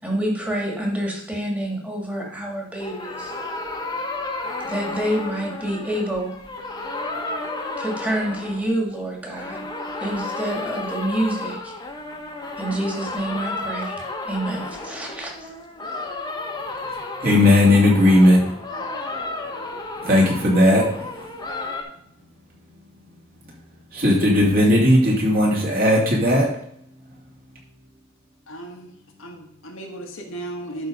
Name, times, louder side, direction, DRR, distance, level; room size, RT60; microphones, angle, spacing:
voice 1, 0.0-3.3 4.6-6.3 7.8-9.7 10.0-11.7 12.6-15.5, right 1 dB, 5° right, 1.9 m, -27 dB
sound 1, 2.8-9.0 9.3-21.8, left 2 dB, 20° left, 1.1 m, -32 dB
voice 2, 17.2-18.5 20.0-21.1 23.9-26.5, left 1 dB, 45° right, 2.7 m, -16 dB
voice 3, 28.5-28.9 29.2-30.9, right 2 dB, 85° left, 1.7 m, -35 dB
11.5 x 4.1 x 5.2 m
head